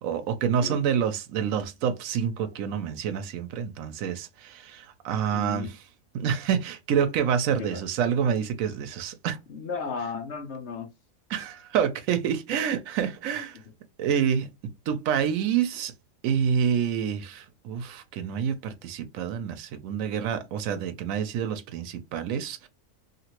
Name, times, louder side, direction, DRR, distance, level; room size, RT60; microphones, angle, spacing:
voice 1, 0.0-5.8 6.1-9.4 11.3-13.6 14.0-14.5 14.9-15.9 16.2-22.7, right 8 dB, 85° right, 1.0 m, -27 dB
voice 2, 5.3-5.7 7.6-7.8 9.5-10.9, left 5 dB, 60° left, 0.9 m, -34 dB
2.9 x 2.7 x 2.9 m
omnidirectional pair, 1.4 m